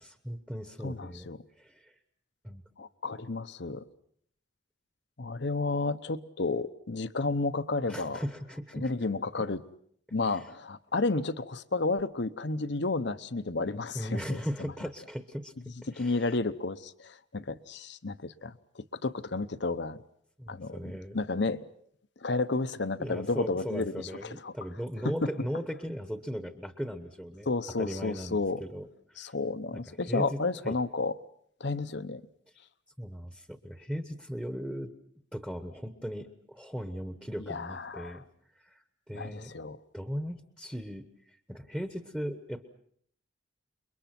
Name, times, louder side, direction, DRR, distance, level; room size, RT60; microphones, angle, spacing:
voice 1, 0.0-1.3 1.6-1.9 2.4-2.6 7.9-8.9 10.2-10.5 13.9-16.4 20.4-21.2 23.0-27.5 27.8-29.3 29.7-30.8 33.0-34.9 35.3-38.2 38.5-42.7, equal, 5° right, 1.2 m, -38 dB
voice 2, 0.8-1.4 2.8-3.8 5.2-8.2 8.7-9.6 10.1-14.7 16.0-20.0 20.5-21.6 22.2-24.0 24.4-24.5 25.0-25.1 27.5-28.6 29.2-31.1 31.6-32.2 37.5-38.2 39.1-39.8, left 3 dB, 60° left, 0.9 m, -32 dB
29.0 x 22.5 x 6.0 m
head